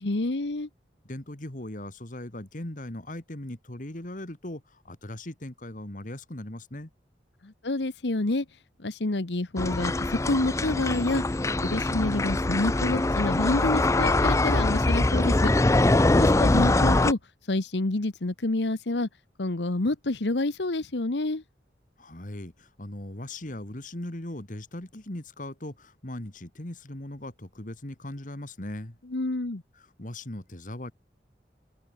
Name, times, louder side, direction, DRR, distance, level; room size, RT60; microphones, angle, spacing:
voice 1, 0.0-0.7 7.4-8.4 8.8-11.2 11.6-15.5 16.1-17.2 17.5-19.1 19.4-21.4 29.1-29.6, left 2 dB, 80° left, 1.2 m, -28 dB
voice 2, 1.0-6.9 22.0-29.0 29.8-30.9, left 1 dB, 50° left, 2.2 m, -39 dB
sound 1, 9.6-17.1, left 2 dB, 15° left, 0.5 m, -23 dB
head